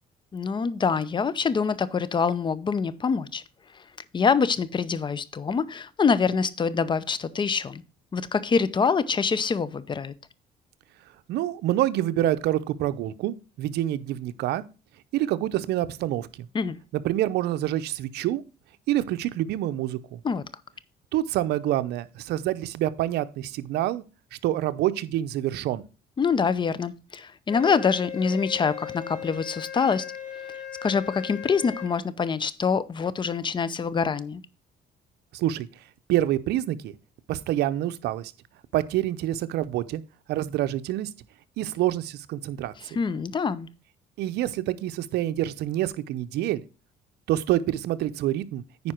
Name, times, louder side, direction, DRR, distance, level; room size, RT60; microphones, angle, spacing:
voice 1, 0.3-3.4 4.1-7.8 8.1-10.1 16.5-16.8 20.2-20.4 26.2-30.1 30.5-34.4 42.8-43.7, left 5 dB, 30° left, 0.6 m, -25 dB
voice 2, 11.3-14.6 15.1-16.5 17.0-18.4 18.9-20.2 21.1-24.0 24.4-25.8 35.3-35.7 36.1-36.9 37.3-38.3 38.7-40.0 40.3-41.1 41.6-42.7 44.2-46.6 47.3-48.6, right 13 dB, 75° right, 0.6 m, -27 dB
Wind instrument woodwind instrument, 27.5-31.9, left 9 dB, 45° left, 2.5 m, -38 dB
9.5 x 5.0 x 4.4 m
cardioid pair, 110°, 17 cm